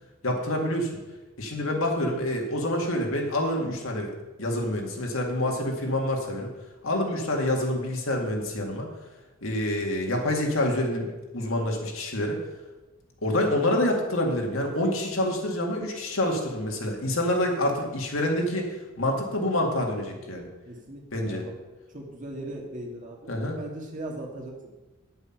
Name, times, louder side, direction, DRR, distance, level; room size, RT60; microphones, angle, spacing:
voice 1, 0.2-0.9 1.4-4.1 4.4-6.5 6.8-8.9 9.4-11.1 11.3-12.4 13.2-18.7 19.0-20.5 21.1-21.4 23.3-23.6, left 1 dB, 70° left, 1 dB, 2.0 m, -27 dB
voice 2, 20.6-21.6 21.9-24.7, right 1 dB, 40° right, -1 dB, 2.2 m, -39 dB
9.7 x 8.1 x 5.9 m, 1.1 s
head